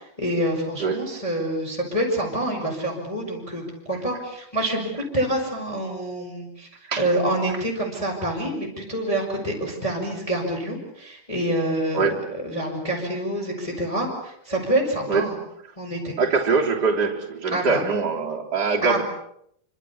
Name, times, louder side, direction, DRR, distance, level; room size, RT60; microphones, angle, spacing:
voice 1, 0.0-6.7 7.0-15.3 15.8-16.1 17.5-17.8 18.8-19.0, right 1 dB, 5° left, -1 dB, 5.1 m, -27 dB
voice 2, 0.8-1.1 6.9-7.1 12.0-12.2 15.1-15.3 16.2-19.0, right 4 dB, 25° right, -1 dB, 3.4 m, -23 dB
27.0 x 25.5 x 7.1 m, 0.73 s
omnidirectional pair, 4.8 m